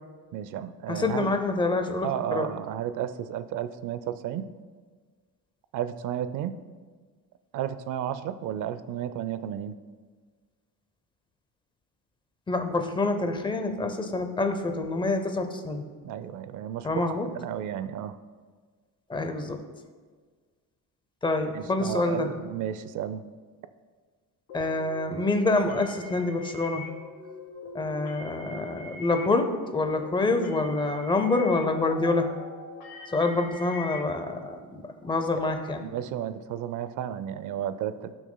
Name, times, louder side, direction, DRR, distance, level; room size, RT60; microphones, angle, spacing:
voice 1, 0.3-1.3 2.0-4.5 5.7-6.6 7.5-9.8 16.0-18.2 21.5-23.3 35.3-35.5 35.8-38.1, right 10 dB, 55° right, 13 dB, 0.5 m, -33 dB
voice 2, 0.9-2.5 12.5-15.8 16.8-17.3 19.1-19.6 21.2-22.3 24.5-26.8 27.7-32.3 33.1-35.8, left 2 dB, 15° left, 6 dB, 0.5 m, -27 dB
sound 1, 24.5-34.0, left 3 dB, 45° left, 2.7 m, -42 dB
16.0 x 6.1 x 2.2 m, 1.5 s
cardioid pair, 165°, 38 cm